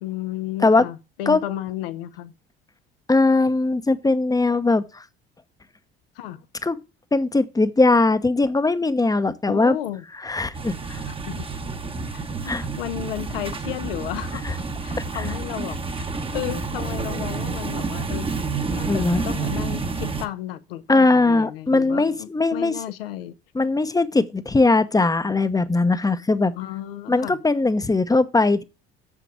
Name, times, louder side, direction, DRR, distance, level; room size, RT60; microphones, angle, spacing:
voice 1, 0.0-2.3 6.1-6.4 9.5-10.0 11.1-11.5 12.1-14.5 14.8-15.8 16.3-23.3 26.6-27.4, left 13 dB, 75° left, 0.8 m, -33 dB
voice 2, 3.1-5.0 6.6-6.8 7.1-9.8 10.2-11.0 12.5-12.6 15.2-15.3 18.9-19.2 20.9-22.7 23.5-26.5 27.1-28.6, left 3 dB, 10° left, 0.8 m, -20 dB
sound 1, 10.5-20.3, right 4 dB, 20° right, 1.0 m, -29 dB
7.3 x 7.0 x 4.8 m
figure-of-eight pair, 60°, 29 cm